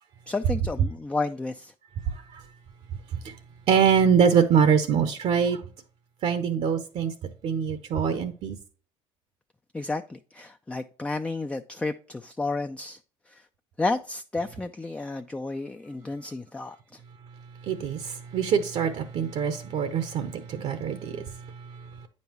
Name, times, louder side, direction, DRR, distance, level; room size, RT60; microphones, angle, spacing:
voice 1, 0.3-1.7 9.7-13.0 13.3-13.4 13.8-17.0, left 3 dB, 10° left, 0.3 m, -31 dB
voice 2, 2.1-2.4 3.2-3.3 3.7-5.6 6.2-7.1 7.4-8.6 17.7-21.3, right 7 dB, 60° right, 0.8 m, -24 dB
8.5 x 5.4 x 2.9 m
cardioid pair, 110°, 12 cm